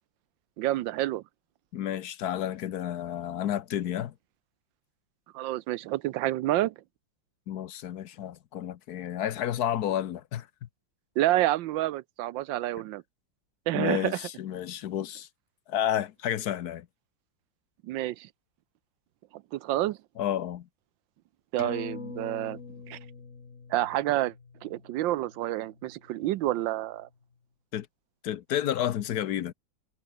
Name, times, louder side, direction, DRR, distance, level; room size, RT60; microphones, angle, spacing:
voice 1, 0.6-1.2 5.3-6.7 11.2-13.0 13.7-14.2 17.8-18.3 19.3-20.0 21.5-22.6 22.9-23.0 23.7-24.3 24.6-27.1, right 15 dB, 80° right, 1.3 m, -28 dB
voice 2, 1.7-4.1 7.5-10.5 13.7-15.3 15.7-16.9 20.2-20.7 27.7-27.9 28.2-29.5, left 11 dB, 65° left, 1.2 m, -31 dB
sound 1, 21.6-26.5 26.9-27.0, left 5 dB, 40° left, 2.2 m, -44 dB
omnidirectional pair, 2.1 m